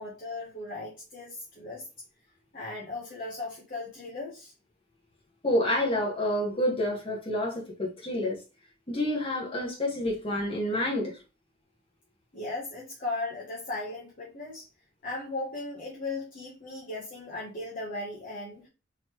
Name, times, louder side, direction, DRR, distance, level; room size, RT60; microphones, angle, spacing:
voice 1, 0.0-1.8 2.5-4.5 12.3-14.7 15.0-18.7, left 2 dB, 45° left, 1.1 m, -37 dB
voice 2, 5.4-8.4 8.9-11.1, left 1 dB, 30° left, 1.5 m, -28 dB
4.0 x 3.1 x 3.1 m
head